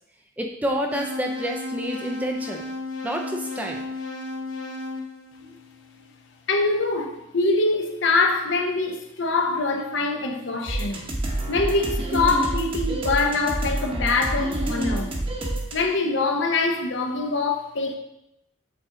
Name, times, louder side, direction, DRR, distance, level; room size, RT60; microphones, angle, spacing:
voice 1, 0.4-2.6 3.0-3.8, equal, 10° right, 0.4 m, -28 dB
sound 1, 0.9-6.0, left 2 dB, 85° left, 0.8 m, -34 dB
voice 2, 6.5-11.0 11.5-15.1 15.7-18.0, left 3 dB, 60° left, 0.7 m, -24 dB
sound 2, 10.7-15.7, right 1 dB, 25° right, 0.9 m, -28 dB
7.9 x 3.9 x 3.7 m
head